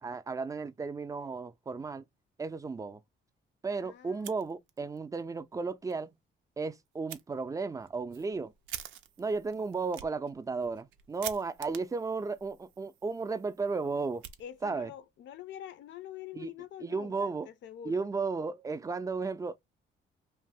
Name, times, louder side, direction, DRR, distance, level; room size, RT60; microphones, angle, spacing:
voice 1, 0.0-2.0 2.4-3.0 3.6-6.1 6.6-8.5 9.2-14.2 14.6-14.9 16.3-16.5 16.8-17.5 17.8-19.6, right 4 dB, 15° right, 0.3 m, -34 dB
voice 2, 3.8-4.3 14.4-18.1, left 11 dB, 65° left, 0.4 m, -46 dB
Fire, 4.1-5.0 5.3-5.4 5.9-6.0 7.1-7.2 7.8-14.9, right 11 dB, 90° right, 0.4 m, -47 dB
2.6 x 2.0 x 3.4 m
cardioid pair, 90°, 20 cm